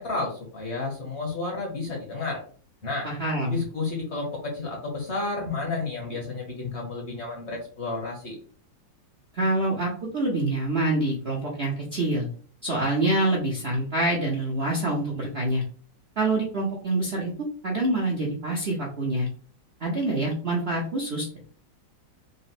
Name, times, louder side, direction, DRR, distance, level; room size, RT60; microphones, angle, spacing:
voice 1, 0.0-2.4 2.8-3.1 3.5-8.4, left 3 dB, 45° left, -1 dB, 1.0 m, -31 dB
voice 2, 3.0-3.6 9.3-12.3 12.6-15.6 16.2-19.3 19.8-21.4, right 2 dB, 55° right, -2 dB, 0.7 m, -26 dB
4.0 x 2.1 x 4.1 m, 0.44 s
omnidirectional pair, 2.0 m